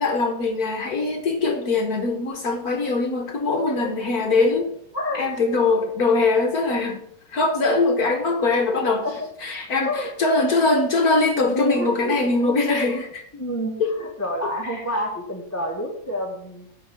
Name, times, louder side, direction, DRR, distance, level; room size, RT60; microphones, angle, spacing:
voice 1, 0.0-4.7 5.1-7.0 7.3-9.0 9.4-13.2 13.8-14.0 14.6-14.8, left 3 dB, 55° left, 4 dB, 1.5 m, -22 dB
voice 2, 4.9-5.3 8.3-8.4 8.8-9.3 9.8-10.4 11.5-12.3 13.3-16.7, left 1 dB, 10° left, -2 dB, 1.3 m, -29 dB
10.5 x 4.6 x 7.5 m, 0.68 s
omnidirectional pair, 2.1 m